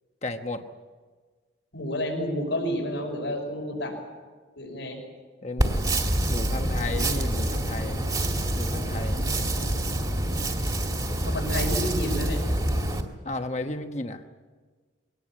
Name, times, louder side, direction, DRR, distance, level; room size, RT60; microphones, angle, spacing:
voice 1, 0.2-0.6 5.4-8.0 8.6-9.2 13.2-14.2, left 2 dB, 35° left, 6 dB, 1.2 m, -34 dB
voice 2, 1.7-3.9 4.6-5.0 11.3-12.4, equal, 80° left, 2 dB, 5.5 m, -30 dB
sound 1, 5.6-13.0, right 1 dB, 20° right, 2.2 m, -26 dB
23.5 x 18.5 x 8.7 m, 1.4 s
head